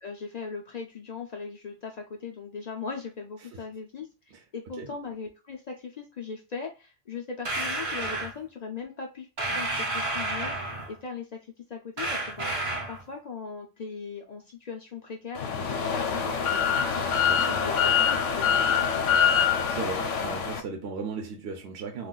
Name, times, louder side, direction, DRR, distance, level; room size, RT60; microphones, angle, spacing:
voice 1, 0.0-4.1 4.5-11.4 11.7-17.1 17.6-19.0, left 5 dB, 60° left, 0.4 m, -39 dB
sound 1, 7.4-8.3 9.4-11.0 12.0-13.0, right 2 dB, 35° right, 0.6 m, -30 dB
sound 2, 15.4-20.6, left 7 dB, 80° left, 0.9 m, -25 dB
voice 2, 17.3-17.6 19.7-22.1, right 4 dB, 65° right, 0.8 m, -36 dB
2.4 x 2.3 x 3.7 m
omnidirectional pair, 1.2 m